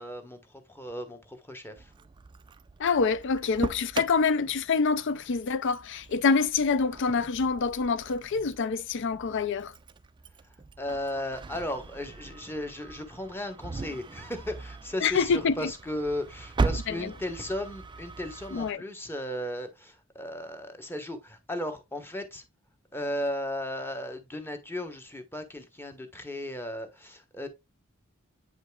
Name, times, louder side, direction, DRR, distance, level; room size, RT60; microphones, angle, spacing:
voice 1, 0.0-1.9 10.4-22.5 22.9-27.5, left 1 dB, 10° left, 1.1 m, -36 dB
Engine starting, 1.8-18.7, right 3 dB, 25° right, 0.3 m, -39 dB
voice 2, 2.8-9.7 15.0-15.7 16.9-17.1 18.5-18.8, left 5 dB, 60° left, 0.5 m, -26 dB
8.6 x 5.1 x 2.3 m
head